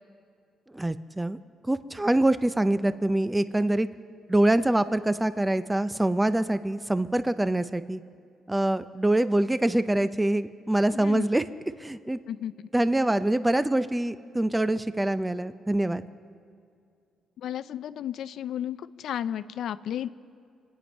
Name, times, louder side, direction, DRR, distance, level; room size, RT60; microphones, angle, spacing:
voice 1, 0.7-1.4 1.6-3.9 4.3-8.0 8.5-11.4 11.8-12.2 12.7-16.0, right 1 dB, 10° right, 13 dB, 0.6 m, -25 dB
voice 2, 10.9-11.3 12.3-12.5 17.4-20.1, left 10 dB, 70° left, 14 dB, 0.5 m, -33 dB
26.0 x 9.4 x 5.4 m, 2.3 s
cardioid pair, 90°, 0 cm